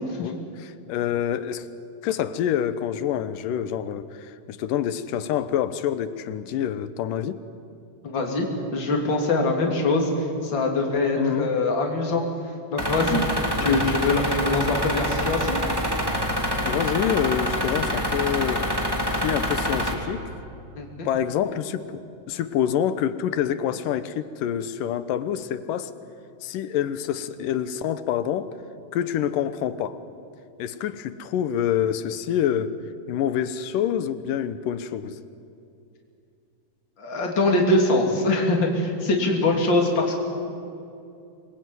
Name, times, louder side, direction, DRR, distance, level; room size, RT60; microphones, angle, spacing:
voice 1, 0.2-1.7 2.0-7.4 11.2-11.5 13.7-13.8 16.7-20.2 21.1-25.9 26.4-28.6 28.9-30.0 30.6-32.7 33.1-35.2, left 10 dB, 90° left, 13 dB, 2.6 m, -27 dB
voice 2, 8.0-8.5 8.7-12.2 12.7-13.2 13.6-15.6 20.8-21.1 37.0-40.2, left 2 dB, 35° left, 1 dB, 3.7 m, -23 dB
sound 1, 12.8-19.9, equal, 10° right, 2.3 m, -26 dB
25.5 x 21.5 x 9.4 m, 2.6 s
omnidirectional pair, 3.7 m